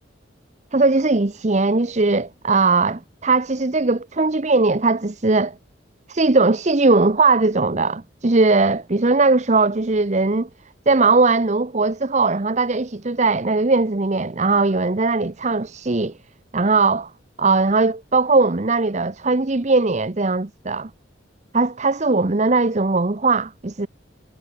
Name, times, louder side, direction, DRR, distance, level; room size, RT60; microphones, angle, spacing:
voice 1, 0.7-5.5 6.1-10.5 10.9-16.1 16.5-17.1 17.4-20.9 21.5-23.9, right 3 dB, 40° right, 0.9 m, -19 dB
head